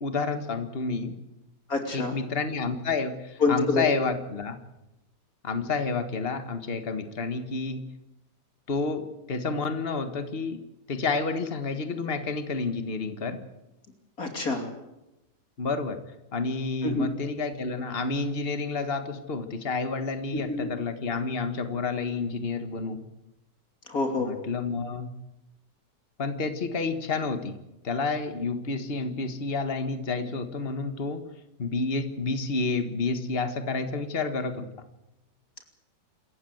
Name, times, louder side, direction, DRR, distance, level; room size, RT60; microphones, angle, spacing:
voice 1, 0.0-1.2 1.9-4.6 5.4-7.8 8.7-10.6 10.9-13.4 15.6-16.0 16.3-23.0 24.2-25.1 26.2-27.6 27.8-31.2 31.6-34.7, left 4 dB, 35° left, 8 dB, 1.8 m, -29 dB
voice 2, 1.7-2.2 3.4-3.9 14.2-14.7 16.8-17.1 20.3-20.7 23.9-24.3, left 3 dB, 55° left, 5 dB, 3.4 m, -27 dB
27.5 x 14.5 x 8.0 m, 0.93 s
omnidirectional pair, 1.9 m